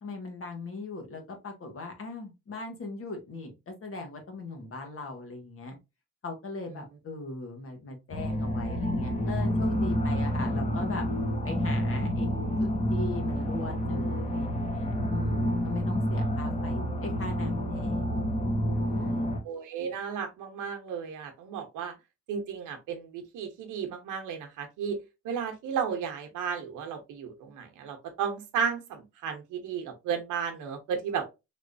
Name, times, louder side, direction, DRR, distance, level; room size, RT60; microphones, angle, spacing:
voice 1, 0.0-5.8 6.2-11.1 11.4-18.3 18.7-19.4, left 3 dB, 50° left, 1.4 m, -39 dB
sound 1, 8.1-19.4, equal, 25° left, 1.0 m, -29 dB
voice 2, 19.4-21.9 22.3-25.0 25.2-31.3, right 7 dB, 90° right, 0.8 m, -34 dB
3.5 x 3.0 x 2.6 m
cardioid pair, 90°, 30 cm